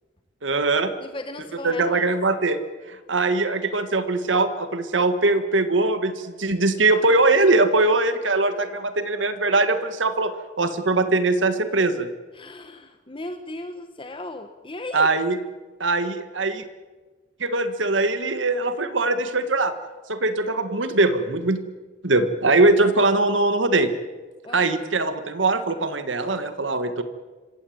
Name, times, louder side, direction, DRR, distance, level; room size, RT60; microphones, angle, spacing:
voice 1, 0.4-0.9 1.6-2.6 2.9-12.1 14.9-15.4 15.8-16.6 17.4-19.8 20.1-21.6 22.0-23.9 24.5-27.0, right 2 dB, 90° right, 10 dB, 1.8 m, -21 dB
voice 2, 1.0-2.1 12.3-15.1 24.4-24.7, left 2 dB, 30° left, 7 dB, 1.3 m, -36 dB
26.0 x 16.0 x 8.8 m, 1.3 s
head